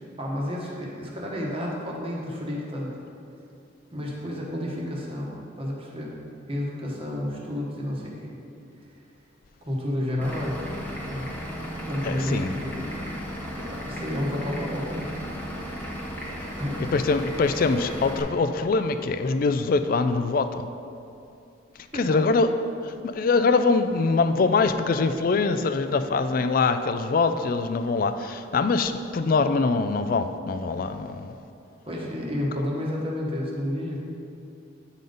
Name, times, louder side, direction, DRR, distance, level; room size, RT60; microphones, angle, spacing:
voice 1, 0.2-3.0 3.9-6.2 6.5-8.3 9.6-10.8 11.1-11.2 11.6-12.9 13.6-15.2 16.6-16.9 21.9-22.2 31.9-34.0, left 1 dB, 30° right, -2 dB, 1.2 m, -31 dB
Vehicle / Engine, 10.2-18.2, equal, 10° left, 0.9 m, -35 dB
voice 2, 12.0-12.5 16.8-20.6 21.9-22.5 22.8-31.3 32.6-32.7, left 4 dB, 45° left, 10 dB, 0.3 m, -23 dB
9.3 x 5.2 x 3.9 m, 2.6 s
head